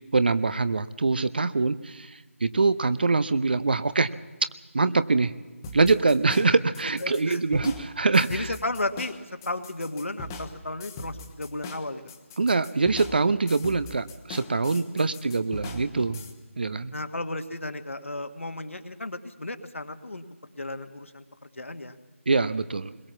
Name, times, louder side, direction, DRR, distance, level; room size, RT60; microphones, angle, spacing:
voice 1, 0.1-4.1 4.7-5.3 5.7-8.5 12.4-16.2 16.6-16.9 22.3-23.0, right 3 dB, 45° right, 14 dB, 0.7 m, -24 dB
sound 1, 5.6-16.3, left 3 dB, 15° left, 1.2 m, -41 dB
voice 2, 6.8-7.4 8.3-9.1 9.5-12.1 14.8-15.1 16.9-20.2 20.6-22.0, left 2 dB, 65° left, 8 dB, 1.7 m, -34 dB
21.5 x 20.5 x 7.2 m, 1.2 s
figure-of-eight pair, 160°, 7 cm